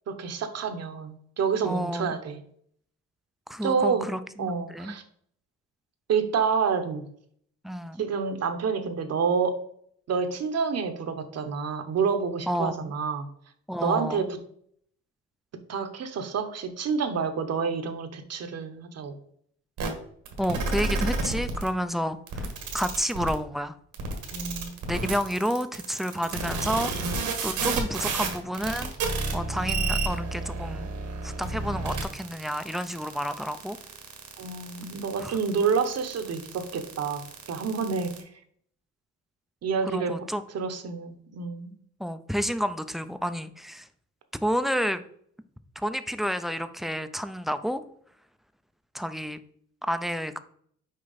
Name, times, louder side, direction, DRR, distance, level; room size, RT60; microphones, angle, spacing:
voice 1, 0.1-2.4 3.6-4.1 4.4-5.0 6.1-7.0 8.0-9.6 10.1-13.3 13.8-14.3 15.7-19.1 24.3-24.7 34.4-37.2 37.5-38.1 39.6-40.1 40.5-41.7, right 6 dB, 55° right, 8 dB, 1.0 m, -28 dB
voice 2, 1.6-2.2 3.5-5.0 7.6-8.0 12.5-12.9 13.7-14.3 20.4-22.5 22.7-23.8 24.9-28.9 29.3-30.9 31.2-33.8 35.2-35.4 39.8-40.4 42.0-43.9 44.4-45.0 45.8-47.8 48.9-49.4 49.8-50.4, equal, ahead, 11 dB, 0.4 m, -30 dB
sound 1, 19.8-19.9 20.3-21.7 22.3-23.3 23.9-38.2, right 3 dB, 80° right, 1.6 m, -31 dB
6.4 x 4.5 x 4.1 m, 0.64 s
cardioid pair, 90°, 30 cm